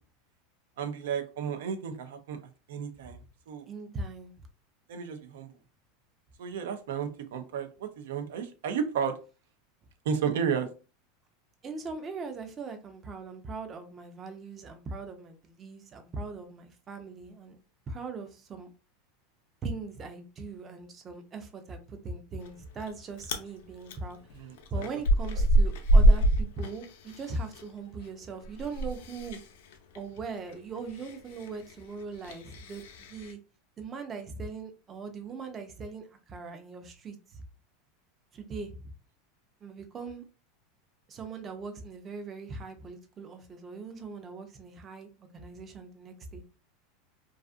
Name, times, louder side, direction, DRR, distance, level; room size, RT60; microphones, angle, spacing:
voice 1, 0.8-2.4 2.7-3.2 3.5-3.7 4.9-5.5 6.4-9.1 10.0-10.7 24.3-24.6, right 7 dB, 85° right, 8 dB, 0.5 m, -32 dB
voice 2, 3.7-4.3 11.6-17.6 17.9-18.7 19.6-24.2 24.7-29.4 29.9-33.4 33.8-37.4 38.3-38.8 39.6-40.3 41.1-46.4, right 4 dB, 25° right, 6 dB, 0.5 m, -40 dB
Chewing mastication, 22.4-22.9 23.2-23.5 23.9-27.6 27.9-33.3, right 1 dB, 80° left, 0.5 m, -26 dB
2.4 x 2.4 x 2.4 m, 0.33 s
supercardioid pair, 135°, 0 cm